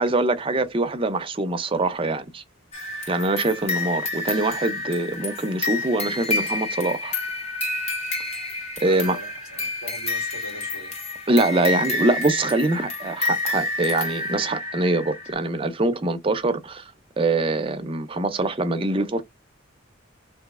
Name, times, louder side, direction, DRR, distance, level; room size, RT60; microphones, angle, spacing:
voice 1, 0.0-2.4 3.1-7.2 8.2-8.3 8.8-9.2 11.3-16.9 17.2-19.2, right 2 dB, 25° right, 0.5 m, -24 dB
sound 1, 2.7-15.3, left 2 dB, 30° left, 1.4 m, -29 dB
voice 2, 8.8-10.9, equal, 80° left, 1.8 m, -41 dB
3.1 x 2.7 x 3.6 m
head